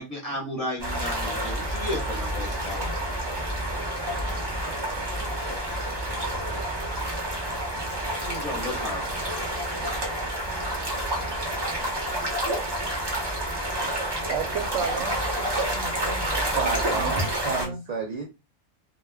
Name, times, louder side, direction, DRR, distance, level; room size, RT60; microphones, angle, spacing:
voice 1, 0.0-2.9 8.2-9.0, left 1 dB, 35° left, -1 dB, 0.7 m, -33 dB
sound 1, 0.8-17.7, right 1 dB, 25° right, 0.7 m, -29 dB
voice 2, 14.3-17.8, right 6 dB, 85° right, 7 dB, 0.9 m, -34 dB
voice 3, 16.5-18.2, right 4 dB, 70° right, 1 dB, 0.4 m, -30 dB
2.2 x 2.2 x 3.3 m, 0.26 s
omnidirectional pair, 1.2 m